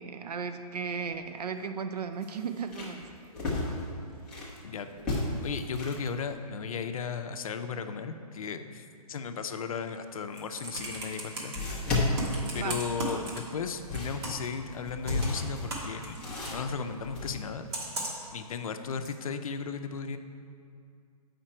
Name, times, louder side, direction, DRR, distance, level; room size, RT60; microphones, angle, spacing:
voice 1, 0.0-3.1 12.5-12.8, right 6 dB, 80° right, 8 dB, 0.5 m, -35 dB
sound 1, 1.0-1.1 1.5-1.6 2.2-4.6 5.0-6.1 10.3-10.4 11.5-13.1 13.6-17.3, left 2 dB, 5° left, 0.6 m, -33 dB
voice 2, 4.6-11.5 12.5-16.2 16.5-17.7 18.3-20.2, left 5 dB, 60° left, 8 dB, 0.5 m, -35 dB
Computer keyboard, 10.1-11.6 12.1-13.7 13.9-14.5 15.0-16.6 17.7-18.3 19.0-19.1, right 2 dB, 40° right, 1.4 m, -36 dB
7.5 x 5.1 x 4.4 m, 2.3 s
hypercardioid pair, 160°, 20 cm